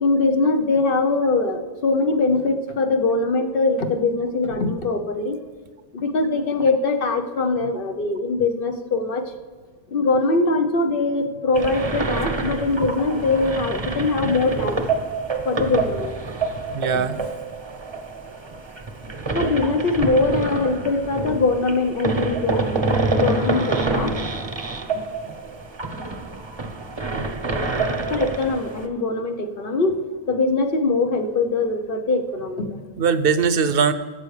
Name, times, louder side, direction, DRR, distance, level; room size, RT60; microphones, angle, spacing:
voice 1, 0.0-5.4 5.9-9.3 9.9-14.8 15.4-16.2 19.3-22.8 23.2-24.1 24.9-25.0 28.1-30.0 30.3-32.9, left 3 dB, 60° left, 5 dB, 1.0 m, -22 dB
sound 1, 11.5-28.9, right 3 dB, 30° right, 0.7 m, -27 dB
voice 2, 16.7-17.2 27.1-27.3 33.0-33.9, right 6 dB, 70° right, 12 dB, 0.8 m, -20 dB
17.5 x 7.7 x 3.2 m, 1.5 s
omnidirectional pair, 1.0 m